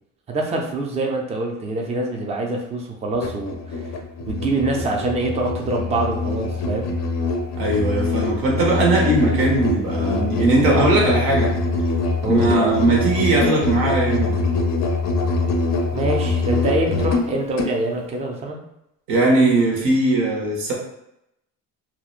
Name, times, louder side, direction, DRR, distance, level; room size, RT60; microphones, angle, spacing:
voice 1, 0.3-3.8 4.3-7.0 12.2-12.7 15.9-18.6, right 2 dB, 20° right, 0 dB, 0.4 m, -25 dB
Musical instrument, 3.1-17.8, left 3 dB, 50° left, 0.4 m, -23 dB
voice 2, 7.6-11.5 12.3-14.3 19.1-20.7, right 2 dB, 80° right, -1 dB, 0.9 m, -19 dB
2.8 x 2.1 x 2.4 m, 0.81 s
cardioid pair, 105°, 36 cm